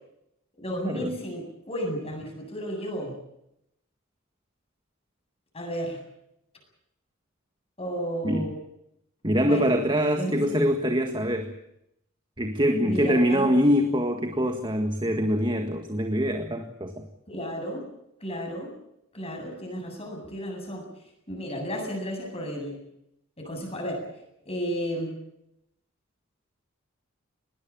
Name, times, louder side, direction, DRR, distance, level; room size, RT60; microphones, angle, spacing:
voice 1, 0.6-3.1 5.5-6.0 7.8-8.5 9.4-9.8 10.2-10.6 12.8-13.5 17.3-17.9 18.2-18.7 19.1-20.8 21.3-22.8 23.4-24.0 24.5-25.1, equal, 30° left, 3 dB, 7.9 m, -32 dB
voice 2, 9.2-11.5 12.4-17.0, equal, 20° right, 6 dB, 1.7 m, -24 dB
21.0 x 19.0 x 8.8 m, 0.79 s
head